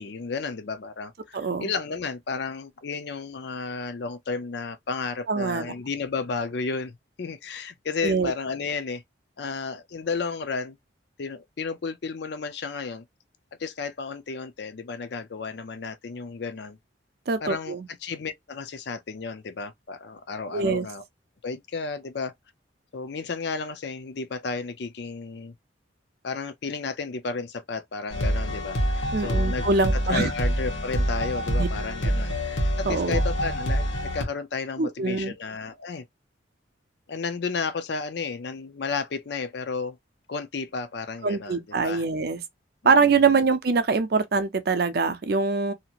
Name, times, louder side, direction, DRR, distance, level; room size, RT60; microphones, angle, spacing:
voice 1, 0.0-9.0 9.4-10.8 11.2-13.0 13.6-16.8 17.4-21.0 21.4-22.3 22.9-25.5 26.2-29.7 29.9-36.0 37.1-40.0 40.3-42.0 42.8-43.3, left 4 dB, 55° left, 0.5 m, -33 dB
voice 2, 1.3-1.7 5.3-5.7 8.0-8.3 17.3-17.9 20.5-20.9 29.1-30.3 31.6-31.7 32.9-33.2 34.8-35.3 41.2-42.4 42.8-45.7, right 4 dB, 50° right, 0.5 m, -23 dB
sound 1, 28.1-34.2, equal, 80° left, 1.1 m, -26 dB
2.7 x 2.5 x 2.8 m
head